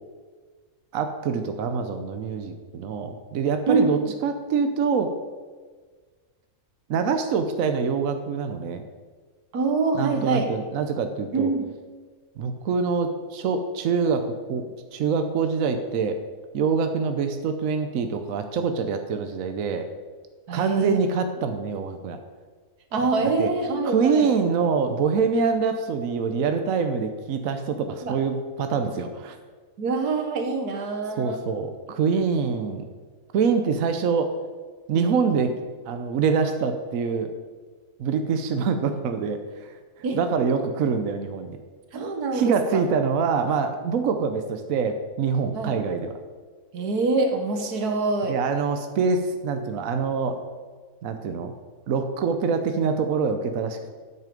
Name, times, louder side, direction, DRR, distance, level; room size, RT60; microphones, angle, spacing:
voice 1, 0.9-5.1 6.9-8.8 9.9-11.5 12.4-16.2 16.5-19.9 20.5-22.2 23.4-23.5 23.9-29.4 31.2-32.9 33.3-34.3 34.9-35.5 35.9-37.3 38.0-39.7 40.1-41.6 42.3-46.2 48.3-50.4 51.0-51.5 51.9-53.9, right 5 dB, 65° right, 7 dB, 1.1 m, -25 dB
voice 2, 3.7-4.1 9.5-10.5 11.3-11.7 20.5-21.0 22.9-24.3 28.0-28.2 29.8-31.4 34.9-35.3 40.0-40.2 41.9-42.8 45.5-45.8 46.7-48.4, right 3 dB, 85° right, 4 dB, 1.7 m, -25 dB
9.2 x 8.2 x 5.2 m, 1.5 s
omnidirectional pair, 1.6 m